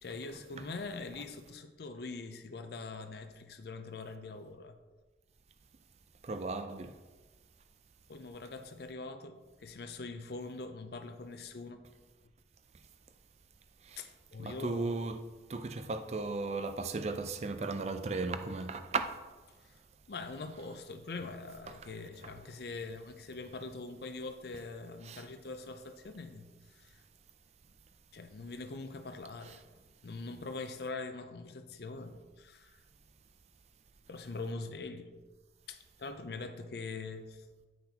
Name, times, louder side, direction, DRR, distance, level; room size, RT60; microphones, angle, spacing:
voice 1, 0.0-4.8 8.1-11.8 14.0-15.0 19.6-19.7 20.1-27.0 28.1-29.6 30.0-32.8 34.1-35.1 35.7-37.5, left 3 dB, 60° left, 0.5 m, -43 dB
voice 2, 6.2-6.9 13.9-14.0 14.4-15.2 15.5-19.1 25.0-25.2 29.4-29.6, right 3 dB, 35° right, 0.4 m, -36 dB
8.6 x 5.8 x 2.8 m
head